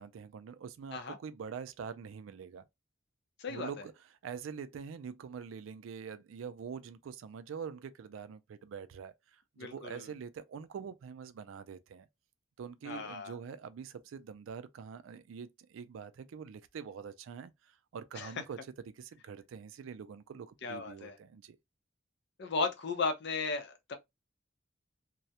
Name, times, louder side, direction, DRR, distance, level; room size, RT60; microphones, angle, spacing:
voice 1, 0.0-2.6 3.5-3.9 4.2-12.1 12.6-18.6 18.9-21.6, right 6 dB, 90° right, 0.4 m, -45 dB
voice 2, 3.4-3.7 9.6-10.1 12.8-13.4 18.2-18.3 20.6-21.2 22.4-23.9, left 4 dB, 60° left, 0.5 m, -35 dB
2.3 x 2.0 x 2.7 m
head